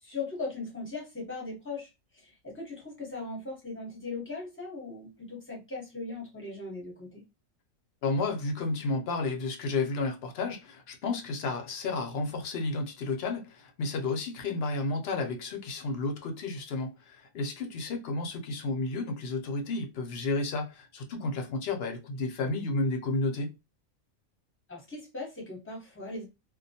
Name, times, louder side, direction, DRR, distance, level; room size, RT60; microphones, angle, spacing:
voice 1, 0.0-7.2 24.7-26.3, left 3 dB, 10° left, 0.7 m, -39 dB
voice 2, 8.0-23.5, left 3 dB, 65° left, 0.6 m, -32 dB
2.3 x 2.2 x 2.7 m
omnidirectional pair, 1.4 m